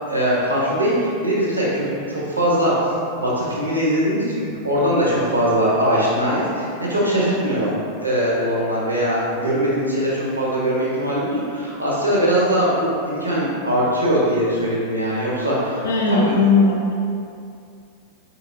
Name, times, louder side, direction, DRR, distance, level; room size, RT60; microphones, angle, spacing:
voice 1, 0.1-7.7 8.0-15.8, equal, 85° right, -6 dB, 0.9 m, -21 dB
voice 2, 15.8-16.9, left 3 dB, 65° left, -1 dB, 0.5 m, -17 dB
4.4 x 4.4 x 2.6 m, 2.5 s
figure-of-eight pair, 90°, 0 cm